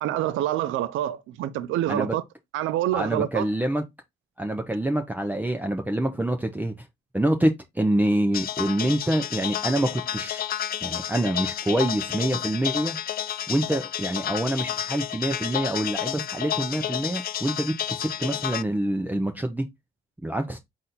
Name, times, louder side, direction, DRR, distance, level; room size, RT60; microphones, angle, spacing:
voice 1, 0.0-2.2 2.5-3.5, right 12 dB, 80° right, 0.4 m, -26 dB
voice 2, 2.9-3.8 4.4-6.7 7.1-10.4 10.8-13.0 13.5-19.6 20.2-20.6, right 1 dB, 10° right, 0.6 m, -26 dB
sound 1, 8.3-18.6, left 10 dB, 50° left, 0.5 m, -31 dB
4.1 x 2.6 x 4.0 m
cardioid pair, 90°, 20 cm